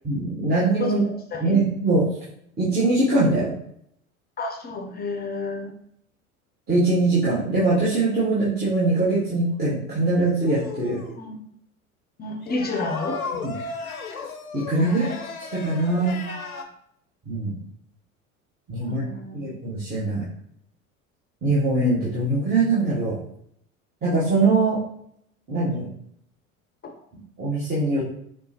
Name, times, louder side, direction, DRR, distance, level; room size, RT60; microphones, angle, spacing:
voice 1, 0.0-1.0 1.4-2.0 2.6-3.5 6.7-11.0 13.4-13.5 14.5-15.1 15.5-16.2 17.3-17.6 18.7-19.0 19.3-20.2 21.4-23.2 24.0-24.8 25.5-25.9 27.4-28.0, right 2 dB, 25° right, -8 dB, 1.5 m, -22 dB
voice 2, 4.4-5.7 11.2-11.3 12.2-13.2 14.8-15.1 18.8-19.5, left 3 dB, 25° left, 3 dB, 0.7 m, -30 dB
sound 1, 10.4-11.2 12.4-16.6, left 4 dB, 90° left, 0.6 m, -34 dB
5.2 x 3.2 x 2.9 m, 0.72 s
figure-of-eight pair, 70°, 41 cm